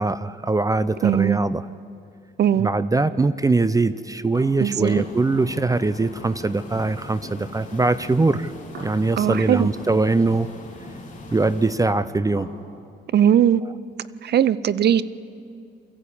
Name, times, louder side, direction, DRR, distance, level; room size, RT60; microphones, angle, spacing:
voice 1, 0.0-1.6 2.6-8.5 8.8-10.5 11.3-12.5, right 3 dB, 15° right, 14 dB, 0.6 m, -22 dB
voice 2, 1.0-1.4 2.4-2.7 4.6-5.0 9.2-9.7 13.1-13.6 14.2-15.0, right 10 dB, 55° right, 17 dB, 0.7 m, -19 dB
Tap, 4.2-7.9 8.2-12.5, right 2 dB, 70° right, 5.9 m, -41 dB
sound 1, 4.9-11.7, left 3 dB, 40° left, 3.2 m, -42 dB
23.5 x 15.0 x 8.6 m, 2.4 s
cardioid pair, 90°, 20 cm